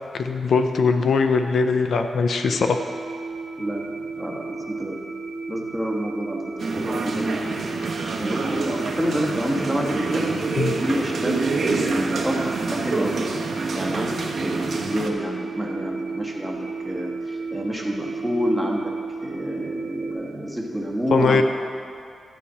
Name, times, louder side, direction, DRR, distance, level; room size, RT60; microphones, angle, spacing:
voice 1, 0.1-2.8 10.5-10.7 21.1-21.4, left 4 dB, 60° left, 6 dB, 0.6 m, -21 dB
sound 1, 2.4-20.1, right 4 dB, 25° right, 1.1 m, -33 dB
voice 2, 3.6-5.0 5.5-6.4 6.7-7.7 8.2-10.3 10.8-13.1 13.7-18.8 19.2-21.4, equal, ahead, -3 dB, 1.3 m, -28 dB
sound 2, 6.6-15.1, right 3 dB, 55° right, 1.2 m, -27 dB
12.5 x 5.0 x 8.6 m, 2.3 s
wide cardioid pair, 175°, 0 cm